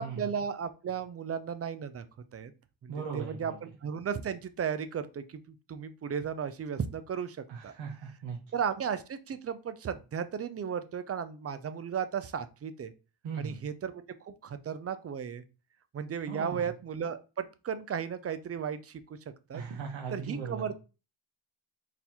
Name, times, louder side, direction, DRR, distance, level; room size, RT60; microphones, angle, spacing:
voice 1, 0.0-2.1 2.3-2.5 2.8-7.4 7.6-7.7 8.5-12.9 13.4-15.4 15.9-19.2 19.5-19.6 20.1-20.7, right 7 dB, 30° right, 12 dB, 0.4 m, -35 dB
voice 2, 2.9-3.6 7.5-8.4 13.2-13.6 16.3-16.6 19.5-20.7, right 6 dB, 60° right, 0 dB, 0.9 m, -38 dB
4.0 x 2.6 x 2.8 m, 0.31 s
cardioid pair, 75°, 50 cm